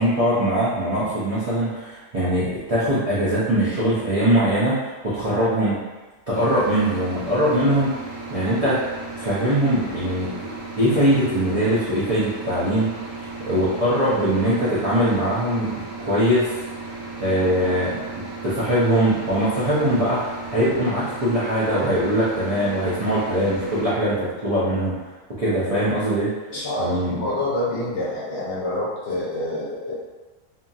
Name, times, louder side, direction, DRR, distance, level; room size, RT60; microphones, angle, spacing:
voice 1, 0.0-5.8 6.3-7.9 8.3-8.8 9.2-10.5 10.8-12.9 13.5-16.5 17.2-18.0 18.4-24.9 25.4-26.3 26.8-27.2, equal, 50° right, -10 dB, 0.4 m, -21 dB
sound 1, 6.3-23.9, right 3 dB, 75° right, 1.1 m, -35 dB
voice 2, 26.5-29.9, left 1 dB, 55° left, -7 dB, 0.9 m, -27 dB
2.7 x 2.7 x 2.3 m, 1.2 s
omnidirectional pair, 1.4 m